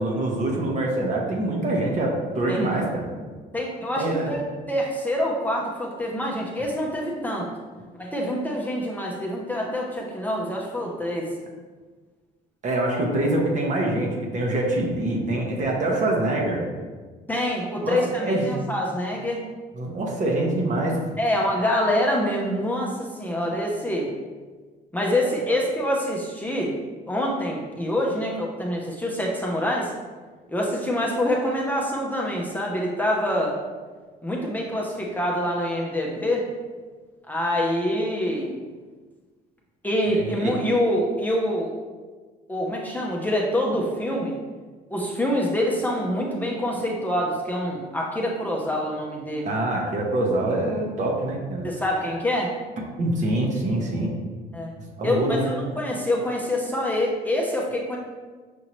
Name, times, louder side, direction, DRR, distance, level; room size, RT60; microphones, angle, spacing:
voice 1, 0.0-3.1 4.0-4.4 12.6-16.6 17.8-18.5 19.7-21.0 25.5-25.6 40.1-40.5 49.4-51.7 53.0-54.1 55.0-55.5, right 1 dB, 45° right, -1 dB, 1.0 m, -25 dB
voice 2, 3.5-4.4 4.7-7.5 8.0-11.3 17.3-19.4 21.2-24.1 24.9-26.8 27.1-29.9 30.5-33.5 34.2-36.5 37.3-38.6 39.8-41.7 42.5-44.4 44.9-49.5 51.6-52.5 54.5-54.7 55.0-58.0, left 1 dB, 10° left, -2 dB, 0.6 m, -26 dB
6.1 x 2.7 x 3.0 m, 1.4 s
cardioid pair, 110°, 17 cm